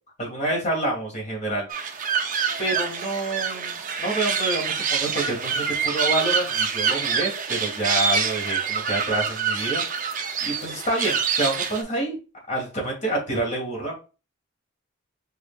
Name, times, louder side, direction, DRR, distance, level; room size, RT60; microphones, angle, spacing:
voice 1, 0.2-2.0 2.6-9.8 10.4-12.2 12.5-14.1, right 2 dB, 35° left, -1 dB, 1.9 m, -28 dB
sound 1, 1.7-11.8, right 6 dB, 40° right, 0.6 m, -26 dB
4.8 x 3.4 x 2.4 m, 0.32 s
head